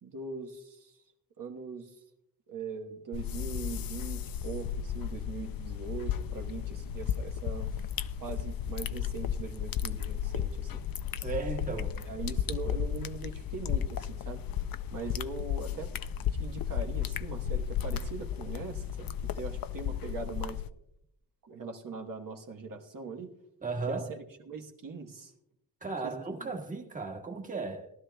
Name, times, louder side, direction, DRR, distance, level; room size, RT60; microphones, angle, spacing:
voice 1, 0.0-1.0 1.4-2.0 2.5-7.9 8.2-10.8 11.7-14.4 14.9-15.9 16.3-20.6 21.4-23.3 23.9-25.3 25.9-26.6, right 4 dB, 60° right, 1.2 m, -41 dB
sound 1, 3.1-20.7, left 9 dB, 70° left, 0.6 m, -34 dB
voice 2, 11.2-11.9 23.6-24.1 25.8-27.9, right 4 dB, 20° right, 1.3 m, -35 dB
19.0 x 12.0 x 2.2 m
cardioid pair, 100°, 37 cm